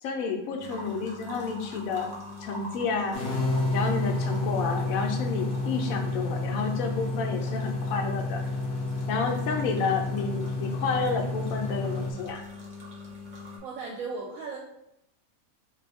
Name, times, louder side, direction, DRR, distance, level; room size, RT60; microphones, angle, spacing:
voice 1, 0.0-2.1 2.4-3.2 3.7-8.4 9.1-12.4, left 5 dB, 75° left, 3 dB, 0.9 m, -30 dB
sound 1, 0.6-13.6, left 3 dB, 40° right, 0.8 m, -43 dB
sound 2, 3.1-12.1, left 2 dB, 50° left, 0.7 m, -30 dB
voice 2, 13.6-14.6, right 4 dB, 70° right, -1 dB, 1.0 m, -36 dB
3.0 x 2.6 x 3.4 m, 0.81 s
omnidirectional pair, 1.6 m